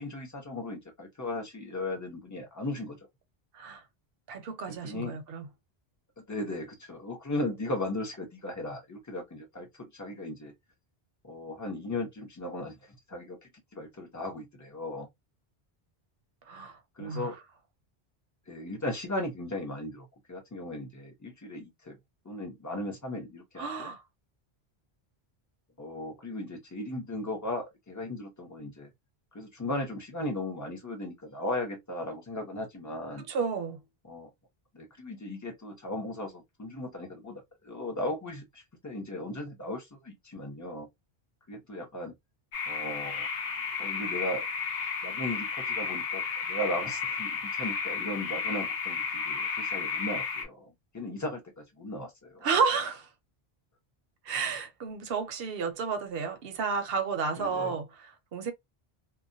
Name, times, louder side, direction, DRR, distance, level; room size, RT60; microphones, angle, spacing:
voice 1, 0.0-3.0 4.7-5.2 6.2-10.5 11.2-13.4 13.7-15.1 17.0-17.4 18.5-22.0 22.2-23.9 25.8-28.9 29.3-33.2 34.1-34.3 34.7-40.9 41.5-42.1 42.7-43.3 43.8-44.5 45.0-52.5 57.4-57.7, left 1 dB, 20° left, 0.7 m, -37 dB
voice 2, 4.3-5.5 16.5-17.3 23.6-24.0 33.3-33.8 52.4-53.1 54.2-58.5, right 5 dB, 70° right, 0.8 m, -31 dB
sound 1, 42.5-50.4, left 5 dB, 75° left, 0.9 m, -33 dB
2.2 x 2.1 x 2.6 m
omnidirectional pair, 1.1 m